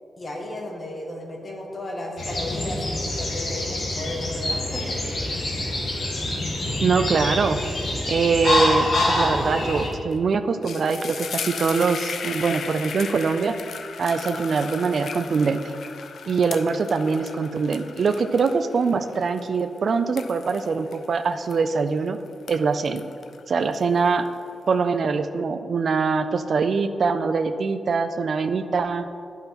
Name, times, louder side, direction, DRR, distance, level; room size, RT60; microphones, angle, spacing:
voice 1, 0.2-5.0, left 1 dB, 30° left, 0 dB, 1.0 m, -34 dB
sound 1, 2.2-9.9, left 1 dB, 45° left, 1.6 m, -26 dB
voice 2, 6.8-7.6 8.1-13.5 14.0-15.6 16.3-22.2 22.5-23.0 23.5-24.3 24.7-29.1, right 5 dB, 50° right, 9 dB, 0.3 m, -23 dB
sound 2, 9.9-10.1 10.4-22.0 22.3-24.3, left 6 dB, 70° left, 0.4 m, -36 dB
11.0 x 5.4 x 3.0 m, 2.5 s
wide cardioid pair, 170°, 0 cm